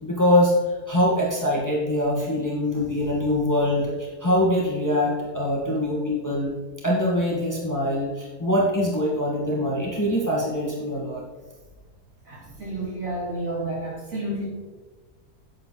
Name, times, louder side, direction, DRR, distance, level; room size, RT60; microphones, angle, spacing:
voice 1, 0.0-6.5 6.8-11.2, left 1 dB, 10° left, -4 dB, 1.9 m, -23 dB
voice 2, 12.3-14.5, right 1 dB, 55° right, -5 dB, 3.6 m, -30 dB
10.5 x 8.1 x 4.1 m, 1.3 s
omnidirectional pair, 1.7 m